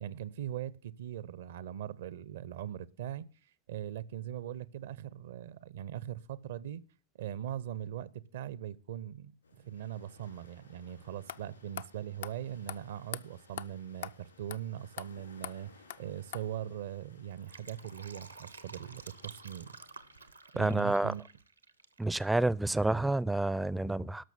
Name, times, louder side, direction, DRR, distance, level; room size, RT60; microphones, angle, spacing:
voice 1, 0.0-3.3 3.7-6.8 7.2-15.7 16.0-19.8 20.5-21.2, right 10 dB, 60° right, 0.6 m, -41 dB
sound 1, 9.4-20.3, left 4 dB, 80° left, 3.4 m, -61 dB
sound 2, 10.9-11.0 11.3-11.4 11.8-11.9 12.2-12.3 12.7-12.8 13.1-13.2 13.6-13.7 14.0-14.1 14.5-14.6 15.0-15.1 15.4-15.5 15.9-16.0 16.3-16.4, left 10 dB, 60° left, 0.5 m, -40 dB
Fill (with liquid), 17.2-22.0 22.3-22.4, right 4 dB, 80° right, 0.9 m, -51 dB
voice 2, 20.6-21.1 22.0-24.2, right 2 dB, 5° right, 0.4 m, -29 dB
12.5 x 6.1 x 6.9 m
figure-of-eight pair, 90°, 0 cm